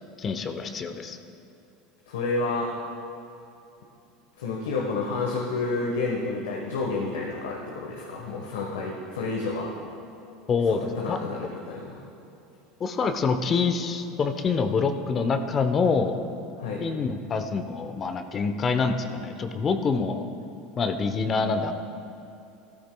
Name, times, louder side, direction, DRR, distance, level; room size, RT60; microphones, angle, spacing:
voice 1, 0.2-1.2 10.5-11.2 12.8-16.2 16.8-20.3 20.8-21.7, left 5 dB, 35° left, 7 dB, 0.8 m, -26 dB
voice 2, 2.1-2.7 4.4-9.7 10.7-12.0 16.6-16.9, left 3 dB, 85° left, -1 dB, 1.2 m, -30 dB
14.5 x 13.5 x 2.3 m, 2.8 s
hypercardioid pair, 90°, 0 cm